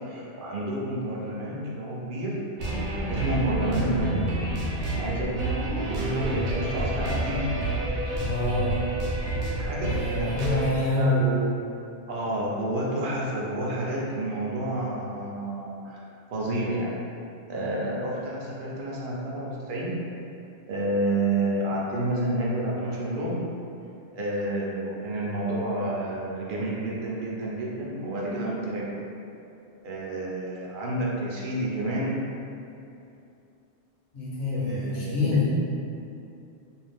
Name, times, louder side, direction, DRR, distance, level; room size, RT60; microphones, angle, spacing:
voice 1, 0.1-2.4 3.1-4.3 4.9-7.6 9.6-10.6 10.9-11.4 12.1-16.0 16.3-17.0 17.5-20.0 20.7-23.5 24.1-29.0 29.8-32.2 34.5-35.5, right 1 dB, 60° right, -4 dB, 0.7 m, -30 dB
sound 1, 2.6-10.7, right 1 dB, 80° right, 0.9 m, -29 dB
voice 2, 8.2-8.8 9.9-11.2 34.1-35.5, left 2 dB, 50° left, -7 dB, 0.8 m, -26 dB
2.6 x 2.2 x 3.4 m, 2.7 s
omnidirectional pair, 1.1 m